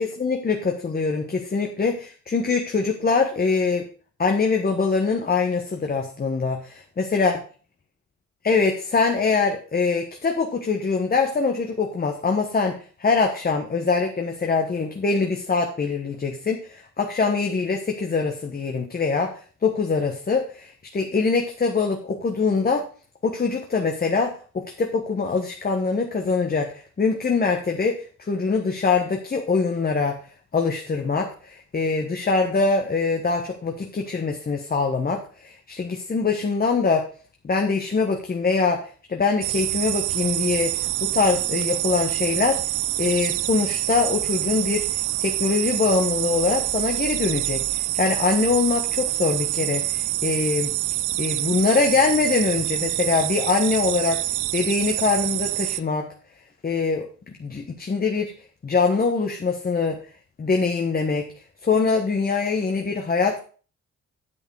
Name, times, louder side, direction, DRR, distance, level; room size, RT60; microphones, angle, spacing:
voice 1, 0.0-3.9 4.2-7.3 8.4-22.9 23.2-30.2 30.5-37.1 37.4-42.6 43.0-50.8 51.2-54.2 54.5-56.1 56.6-57.1 57.4-58.3 58.6-60.0 60.4-61.3 61.6-63.4, left 4 dB, 30° left, 3 dB, 1.3 m, -23 dB
sound 1, 39.4-55.8, right 16 dB, 80° right, 0.5 m, -26 dB
8.9 x 7.2 x 4.8 m, 0.39 s
cardioid pair, 90°, 30 cm